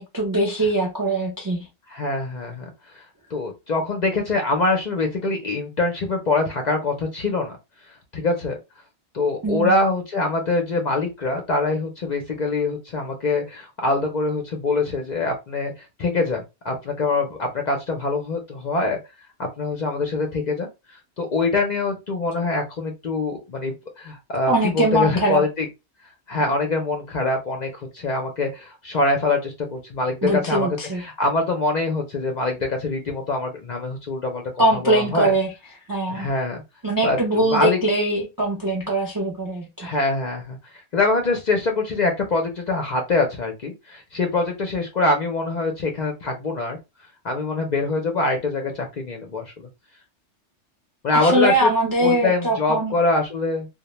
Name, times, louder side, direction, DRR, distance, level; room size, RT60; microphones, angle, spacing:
voice 1, 0.0-1.6 9.4-9.7 24.5-25.4 30.2-31.0 34.6-35.5 35.9-36.3 36.8-39.9 51.1-52.9, right 1 dB, 35° right, 0.3 m, -22 dB
voice 2, 1.9-3.0 3.3-7.5 8.1-8.6 9.1-19.0 19.4-25.7 26.3-35.3 36.1-36.6 37.0-37.8 39.8-46.8 47.2-49.7 51.0-51.7 52.0-53.7, left 3 dB, 55° left, 0.5 m, -24 dB
2.2 x 2.1 x 2.9 m
omnidirectional pair, 1.2 m